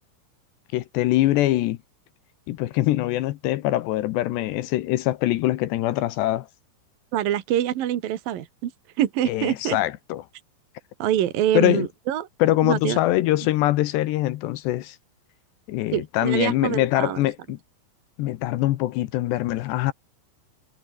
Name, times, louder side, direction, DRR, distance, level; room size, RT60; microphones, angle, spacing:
voice 1, 0.7-1.8 2.5-6.5 9.3-10.2 11.5-11.9 12.4-15.0 15.7-17.6 18.2-19.9, left 15 dB, 75° left, 2.7 m, -23 dB
voice 2, 7.1-8.7 9.0-9.8 11.0-12.3 12.6-13.0 15.9-17.3, right 11 dB, 60° right, 2.6 m, -25 dB
omnidirectional pair, 6.0 m